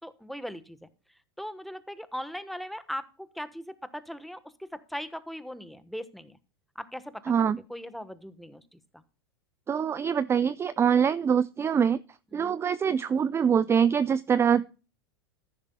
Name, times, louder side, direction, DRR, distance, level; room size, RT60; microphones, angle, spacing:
voice 1, 0.0-0.9 1.4-6.4 6.7-9.0 12.3-12.6, equal, ahead, 12 dB, 1.1 m, -39 dB
voice 2, 7.3-7.6 9.7-12.0 12.3-14.7, right 7 dB, 20° right, 17 dB, 0.5 m, -24 dB
14.0 x 11.0 x 2.2 m, 0.34 s
hypercardioid pair, 105°, 13 cm